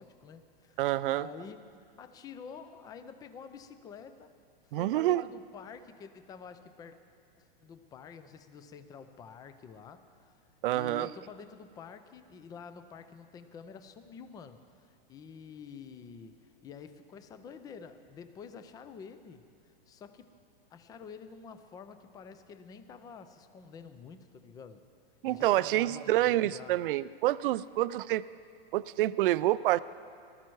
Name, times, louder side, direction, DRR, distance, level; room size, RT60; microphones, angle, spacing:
voice 1, 0.0-1.7 2.0-4.3 4.8-7.0 7.4-10.4 10.7-19.5 19.9-20.3 20.7-24.8 25.2-26.8, left 6 dB, 15° left, 11 dB, 0.5 m, -48 dB
voice 2, 0.8-1.3 4.7-5.2 10.6-11.1 25.2-28.2 28.7-29.8, right 15 dB, 65° right, 17 dB, 0.4 m, -27 dB
19.5 x 13.0 x 4.7 m, 2.3 s
hypercardioid pair, 145°, 29 cm